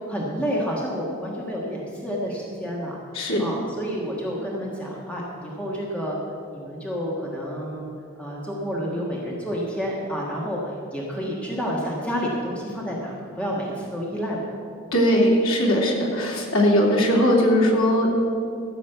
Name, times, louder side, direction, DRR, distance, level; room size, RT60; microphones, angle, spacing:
voice 1, 0.1-3.0 3.4-6.2 6.5-7.9 8.2-14.6, equal, 5° left, -4 dB, 1.5 m, -29 dB
voice 2, 3.1-3.4 14.9-18.2, equal, 85° left, -1 dB, 2.5 m, -19 dB
14.0 x 6.4 x 8.1 m, 2.5 s
head